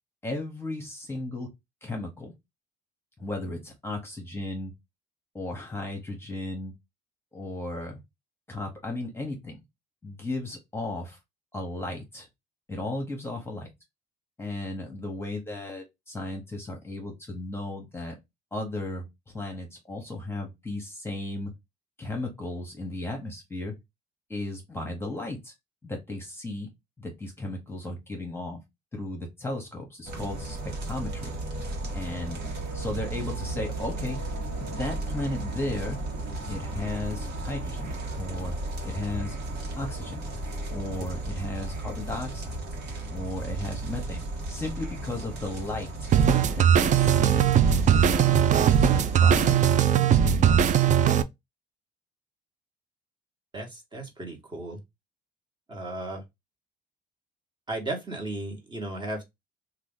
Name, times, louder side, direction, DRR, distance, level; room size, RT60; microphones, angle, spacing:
voice 1, 0.2-1.5 1.8-2.3 3.2-4.7 5.3-6.7 7.3-8.0 8.5-9.6 10.0-11.2 11.5-12.3 12.7-13.7 14.4-18.2 18.5-19.0 19.3-21.5 22.0-23.7 24.3-25.5 25.8-26.7 27.0-28.6 28.9-30.6 30.8-31.3 31.9-32.4 32.7-34.2 34.6-36.0 36.5-38.5 38.8-39.4 39.8-40.2 40.7-42.5 43.1-44.2 44.5-46.1 46.5-47.6 47.8-48.5 48.8-49.6 49.9-50.6, left 2 dB, 15° left, 1.0 m, -35 dB
sound 1, 30.0-49.6, right 2 dB, 65° right, 1.2 m, -34 dB
sound 2, 46.1-51.2, right 9 dB, 45° right, 0.4 m, -20 dB
voice 2, 53.5-54.8 55.7-56.2 57.7-59.2, right 2 dB, 25° right, 1.2 m, -35 dB
2.9 x 2.4 x 3.6 m
cardioid pair, 105°, 18 cm